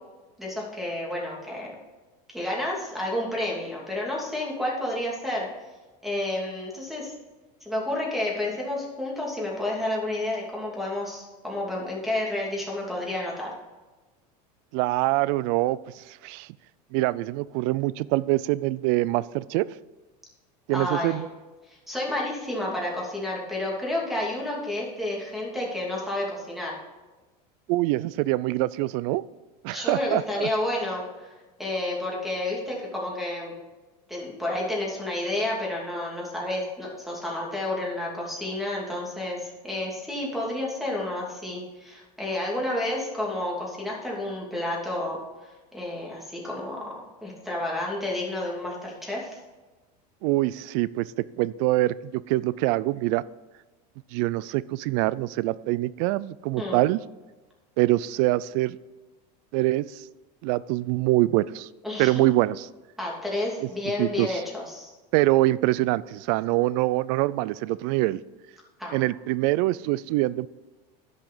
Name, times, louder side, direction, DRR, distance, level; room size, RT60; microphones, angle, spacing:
voice 1, 0.4-1.7 2.3-5.5 6.0-7.1 7.6-13.6 20.7-21.2 21.7-26.7 29.7-31.3 31.6-33.5 34.1-45.2 45.7-49.4 56.6-56.8 61.8-62.2 63.0-64.9 68.8-69.0, left 1 dB, ahead, -3 dB, 2.8 m, -30 dB
voice 2, 14.7-16.5 16.9-19.7 20.7-21.2 27.7-29.2 29.6-30.5 50.2-51.1 51.4-53.2 54.1-57.0 57.8-58.8 59.5-60.0 60.4-61.7 62.0-62.6 64.0-64.4 65.1-68.2 68.9-70.5, right 18 dB, 60° right, 19 dB, 0.4 m, -24 dB
10.5 x 5.7 x 6.2 m, 1.2 s
supercardioid pair, 120°, 20 cm